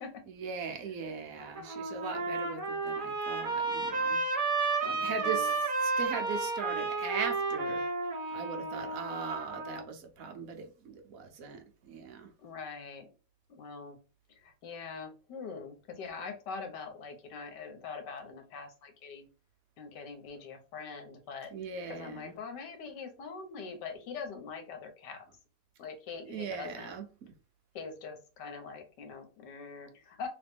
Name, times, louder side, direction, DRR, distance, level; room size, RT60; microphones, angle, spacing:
voice 1, 0.3-4.2 4.8-7.9 8.3-12.3 21.5-22.4 26.3-27.3, right 6 dB, 60° right, 1.2 m, -40 dB
Trumpet, 1.4-9.8, right 3 dB, 35° right, 1.1 m, -32 dB
voice 2, 4.8-5.5 12.4-13.1 13.5-14.0 14.3-19.3 19.8-21.5 21.9-25.2 25.8-26.9 27.8-30.3, left 5 dB, 85° left, 1.6 m, -43 dB
3.2 x 3.1 x 3.5 m
omnidirectional pair, 1.8 m